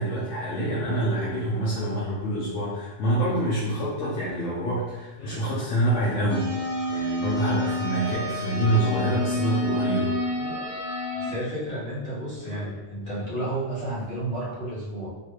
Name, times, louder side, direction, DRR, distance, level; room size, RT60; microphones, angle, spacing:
voice 1, 0.0-6.5 6.9-10.2, right 1 dB, 90° left, -8 dB, 1.1 m, -26 dB
sound 1, 4.2-4.4 5.2-5.6 6.0-6.1 6.5-6.7 7.6-8.6 9.0-9.7 10.3-10.8 12.4-12.8 13.9-14.1 14.5-14.6, left 2 dB, 45° left, 1.0 m, -43 dB
sound 2, 6.3-11.3, left 1 dB, 50° right, 0.9 m, -29 dB
voice 2, 11.1-15.1, right 1 dB, 65° left, -9 dB, 1.7 m, -31 dB
3.8 x 2.3 x 3.1 m, 1.1 s
omnidirectional pair, 1.2 m